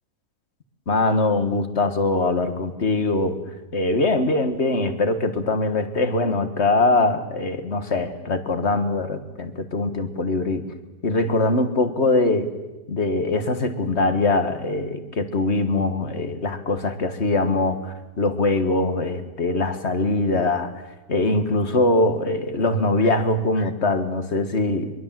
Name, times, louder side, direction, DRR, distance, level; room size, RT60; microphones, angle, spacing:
voice 1, 0.9-3.4 3.7-10.6 11.0-12.5 12.9-20.7 21.1-24.9, left 2 dB, 45° left, 8 dB, 1.9 m, -22 dB
23.5 x 23.0 x 7.7 m, 1.1 s
omnidirectional pair, 1.7 m